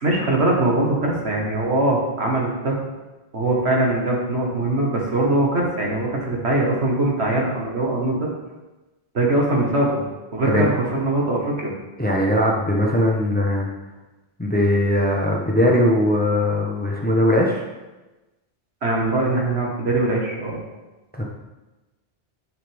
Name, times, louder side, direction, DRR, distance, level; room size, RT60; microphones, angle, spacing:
voice 1, 0.0-2.8 3.3-8.3 9.1-10.0 10.3-11.7 18.8-20.6, right 2 dB, 75° right, -2 dB, 1.9 m, -21 dB
voice 2, 12.0-13.7 14.4-17.6 21.1-21.2, left 1 dB, 10° left, -1 dB, 1.0 m, -20 dB
11.5 x 5.8 x 3.5 m, 1.1 s
omnidirectional pair, 1.1 m